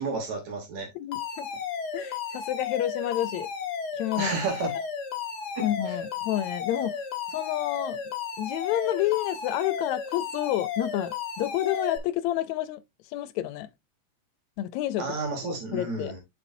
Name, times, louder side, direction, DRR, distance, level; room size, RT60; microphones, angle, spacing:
voice 1, 0.0-0.9 4.2-4.7 5.6-6.0 15.0-16.2, right 3 dB, 70° right, 4.0 m, -31 dB
voice 2, 1.0-1.5 1.9-3.5 3.9-4.3 4.8-4.9 5.6-7.0 7.3-8.0 8.4-12.8 13.1-13.7 14.6-15.1 15.7-16.1, left 13 dB, 80° left, 1.9 m, -29 dB
Alarm, 1.1-12.0, left 6 dB, 45° left, 1.5 m, -34 dB
7.4 x 6.8 x 2.6 m
omnidirectional pair, 3.3 m